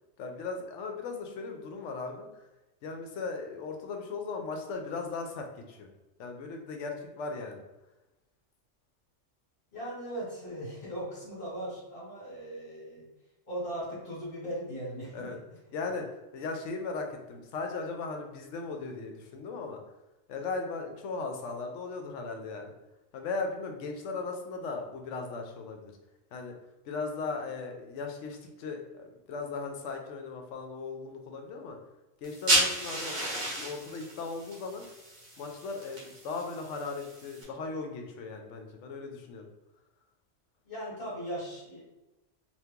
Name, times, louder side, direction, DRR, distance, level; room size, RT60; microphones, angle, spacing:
voice 1, 0.2-2.3 2.8-5.9 6.2-7.6 15.1-15.4 15.7-16.1 16.3-19.8 20.3-22.7 23.1-25.9 26.3-26.5 26.8-31.8 32.2-34.9 35.4-39.5, left 4 dB, 75° left, 3 dB, 0.9 m, -37 dB
voice 2, 9.7-13.1 13.5-15.4 40.6-41.8, right 1 dB, 45° left, -6 dB, 1.2 m, -38 dB
sound 1, 32.2-37.4, right 1 dB, 40° right, 0.9 m, -33 dB
2.8 x 2.5 x 3.5 m, 1.0 s
omnidirectional pair, 1.3 m